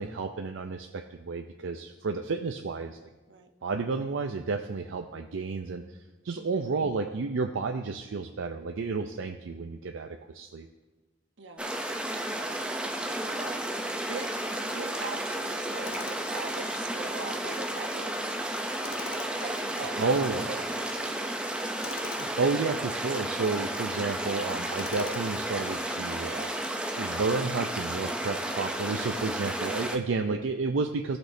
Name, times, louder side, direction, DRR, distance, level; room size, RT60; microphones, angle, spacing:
voice 1, 0.0-3.1 3.6-5.8 6.2-10.7 19.7-20.5 22.2-26.5 27.0-31.2, right 4 dB, 85° right, 5 dB, 0.5 m, -31 dB
voice 2, 6.4-6.7 11.4-11.7 12.3-12.7 13.1-14.3 14.6-18.4 19.4-21.2 29.9-30.2, right 4 dB, 70° right, 5 dB, 0.9 m, -42 dB
sound 1, 11.6-30.0, right 1 dB, 5° right, 0.5 m, -32 dB
Tools, 15.8-16.4 18.8-19.5 21.8-22.3 24.8-25.5, left 6 dB, 85° left, 0.5 m, -43 dB
17.5 x 6.1 x 2.7 m, 1.2 s
head